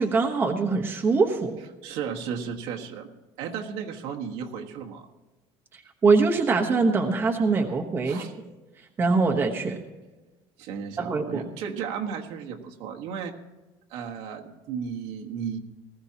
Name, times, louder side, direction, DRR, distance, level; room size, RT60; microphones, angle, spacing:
voice 1, 0.0-1.5 6.0-8.2 9.0-9.8 11.0-11.4, right 4 dB, 20° right, 1 dB, 1.1 m, -23 dB
voice 2, 1.8-3.1 3.4-5.1 8.0-8.3 10.6-13.3 13.9-15.6, right 7 dB, 65° right, 2 dB, 1.5 m, -34 dB
19.0 x 14.5 x 2.9 m, 1.2 s
cardioid pair, 175°, 11 cm